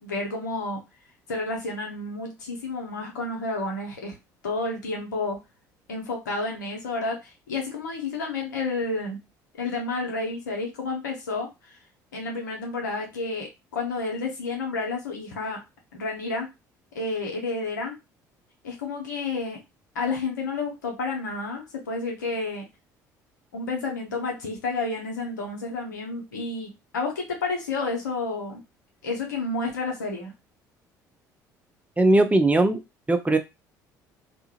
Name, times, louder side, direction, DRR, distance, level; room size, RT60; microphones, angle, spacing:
voice 1, 0.0-0.8 1.3-4.1 4.4-5.4 5.9-9.2 9.6-11.8 12.1-15.6 15.9-16.5 16.9-17.9 18.6-19.6 19.9-22.6 23.5-28.6 29.0-30.3, left 3 dB, 90° left, 1 dB, 0.9 m, -30 dB
voice 2, 32.0-32.8 33.1-33.4, right 2 dB, 15° right, 7 dB, 0.6 m, -19 dB
2.5 x 2.4 x 3.0 m, 0.23 s
hypercardioid pair, 60°, 9 cm